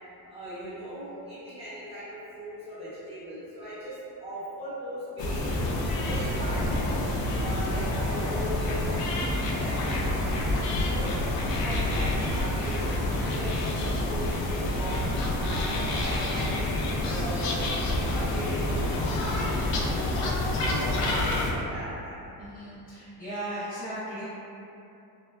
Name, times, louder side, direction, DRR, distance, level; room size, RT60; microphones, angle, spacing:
voice 1, 0.3-5.5 6.0-6.9 7.3-12.8 13.2-16.7 17.0-20.1 20.6-22.2, equal, 15° right, -14 dB, 0.8 m, -39 dB
sound 1, 5.2-21.5, left 1 dB, 75° left, 0.5 m, -28 dB
voice 2, 7.4-7.8 20.6-21.4 22.4-24.2, right 1 dB, 25° left, -15 dB, 0.6 m, -38 dB
3.1 x 2.1 x 2.2 m, 2.8 s
cardioid pair, 180°, 38 cm